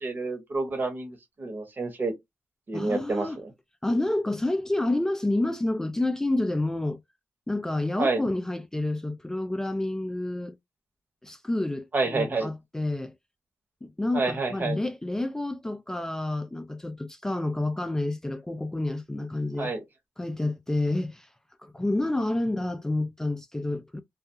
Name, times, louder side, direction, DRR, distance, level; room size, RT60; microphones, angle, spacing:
voice 1, 0.0-2.1 2.7-3.5 8.0-8.2 11.9-12.5 14.1-14.8 19.6-19.8, right 3 dB, 45° right, 1.0 m, -29 dB
voice 2, 2.7-3.4 3.8-7.0 7.5-10.6 11.2-13.1 13.8-19.7 20.2-21.3 21.6-24.0, left 2 dB, 10° left, 0.3 m, -29 dB
2.3 x 2.2 x 2.7 m
cardioid pair, 65°, 5 cm